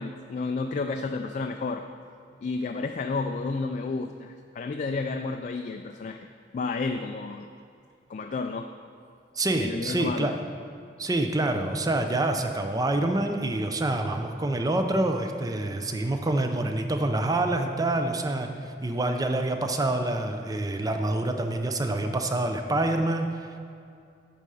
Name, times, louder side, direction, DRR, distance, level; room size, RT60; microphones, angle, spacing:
voice 1, 0.0-1.9 2.4-6.3 6.5-7.5 8.1-8.7 9.5-10.3, left 3 dB, 45° left, 5 dB, 0.3 m, -31 dB
voice 2, 9.4-10.3 11.0-23.6, right 2 dB, 20° right, 5 dB, 0.5 m, -27 dB
9.2 x 5.5 x 4.9 m, 2.4 s
head